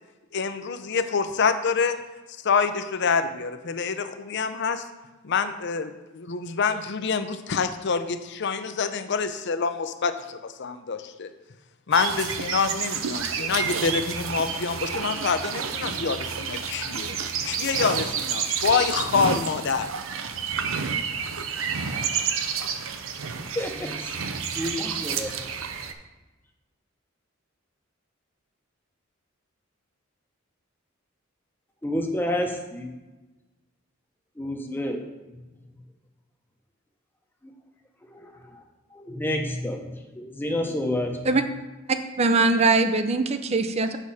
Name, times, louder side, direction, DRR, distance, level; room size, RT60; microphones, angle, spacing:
voice 1, 0.3-4.9 5.2-11.3 11.9-17.2 17.4-19.9, left 5 dB, 60° left, 10 dB, 0.6 m, -26 dB
sound 1, 11.9-25.9, right 6 dB, 80° right, 0.6 m, -30 dB
voice 2, 23.6-24.1 24.5-25.4 31.8-32.9 34.4-35.0 37.4-37.5 38.0-38.6 38.9-41.5, left 1 dB, 10° left, 2 dB, 0.8 m, -30 dB
voice 3, 42.2-44.0, right 3 dB, 30° right, 8 dB, 0.5 m, -21 dB
8.1 x 6.1 x 4.2 m, 1.1 s
head